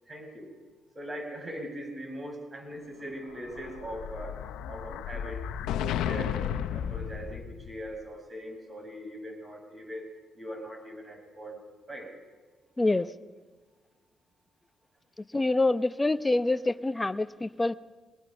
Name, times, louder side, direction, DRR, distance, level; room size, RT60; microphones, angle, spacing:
voice 1, 0.1-0.5 0.9-5.4 5.8-6.5 6.7-11.6 11.9-12.1, right 1 dB, 25° right, 3 dB, 6.7 m, -41 dB
Explosion, 3.2-7.9, left 9 dB, 90° left, 0.8 m, -34 dB
voice 2, 15.3-17.7, left 2 dB, 15° left, 11 dB, 0.8 m, -26 dB
23.5 x 19.5 x 5.6 m, 1.4 s
cardioid pair, 90°, 0 cm